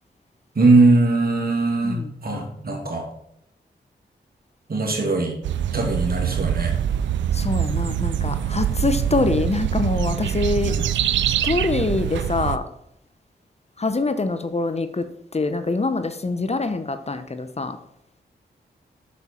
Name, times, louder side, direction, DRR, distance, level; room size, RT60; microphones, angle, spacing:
voice 1, 0.6-3.0 4.7-5.4 5.7-6.7 10.7-10.9, right 2 dB, 55° right, 1 dB, 2.5 m, -20 dB
voice 2, 1.8-2.1 7.3-10.7 11.2-12.6 13.8-15.1 15.3-17.8, left 3 dB, 35° left, 10 dB, 0.9 m, -24 dB
sound 1, 5.4-12.6, right 9 dB, 85° right, 0.4 m, -24 dB
8.3 x 6.7 x 4.4 m, 0.74 s
supercardioid pair, 40°, 19 cm